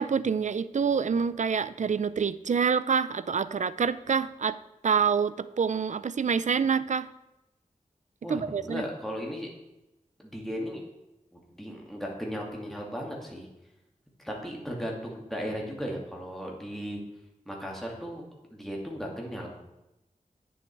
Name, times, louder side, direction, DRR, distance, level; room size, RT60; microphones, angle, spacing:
voice 1, 0.0-4.6 4.8-7.1 8.3-8.8, right 6 dB, 65° right, 15 dB, 0.4 m, -27 dB
voice 2, 8.2-9.5 10.2-10.8 11.3-13.5 14.2-17.0 17.5-18.2 18.5-19.5, equal, ahead, -2 dB, 2.3 m, -36 dB
9.2 x 7.1 x 4.6 m, 0.94 s
wide cardioid pair, 80°, 13 cm